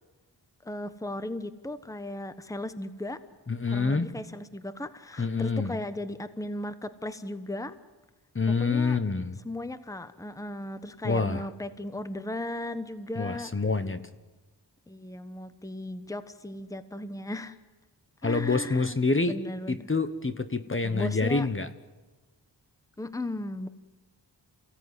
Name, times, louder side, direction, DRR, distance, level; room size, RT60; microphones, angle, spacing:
voice 1, 0.6-3.2 3.7-7.8 8.5-9.0 9.4-13.5 14.9-17.6 18.2-19.0 19.3-19.9 20.8-21.5 23.0-23.7, left 1 dB, 10° left, 12 dB, 1.1 m, -36 dB
voice 2, 3.5-4.1 5.2-5.8 8.3-9.4 11.0-11.5 13.2-14.0 18.2-19.4 19.7-21.7, left 4 dB, 30° left, 11 dB, 1.2 m, -27 dB
28.5 x 17.0 x 9.8 m, 1.3 s
wide cardioid pair, 100°, 43 cm